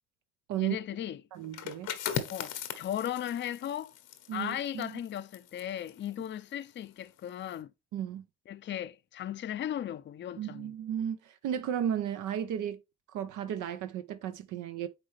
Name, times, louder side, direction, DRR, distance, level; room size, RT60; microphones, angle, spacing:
voice 1, 0.6-1.2 2.3-3.9 4.3-7.7 8.5-10.7, left 11 dB, 40° left, 0.4 m, -36 dB
voice 2, 1.3-1.9 4.3-5.0 7.9-8.2 10.4-12.8 13.1-14.9, right 9 dB, 80° right, 0.7 m, -34 dB
sound 1, 1.4-6.9 7.3-7.6, left 9 dB, 85° left, 1.1 m, -39 dB
9.0 x 3.3 x 3.2 m
cardioid pair, 90°, 30 cm